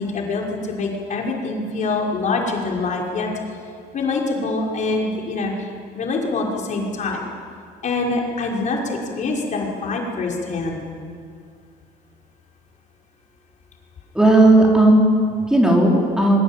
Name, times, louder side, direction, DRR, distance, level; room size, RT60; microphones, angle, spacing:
voice 1, 0.0-3.3 3.9-5.7 5.9-7.2 7.8-10.8, left 3 dB, 45° left, -1 dB, 5.8 m, -25 dB
voice 2, 14.1-16.4, right 1 dB, 5° right, -1 dB, 4.7 m, -15 dB
26.5 x 23.5 x 9.2 m, 2.2 s
cardioid pair, 130°, 17 cm